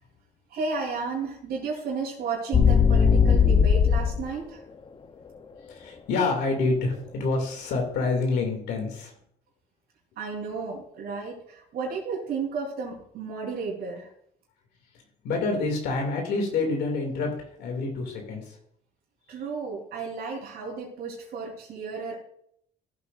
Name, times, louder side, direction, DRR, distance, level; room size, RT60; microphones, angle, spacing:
voice 1, 0.5-4.6 10.2-14.1 19.3-22.2, right 4 dB, 70° right, -6 dB, 3.6 m, -33 dB
sound 1, 2.5-4.2, left 6 dB, 30° left, 0.7 m, -18 dB
voice 2, 5.7-9.1 15.2-18.6, left 3 dB, 80° left, 2 dB, 2.5 m, -27 dB
15.5 x 8.3 x 2.5 m, 0.69 s
cardioid pair, 110°, 17 cm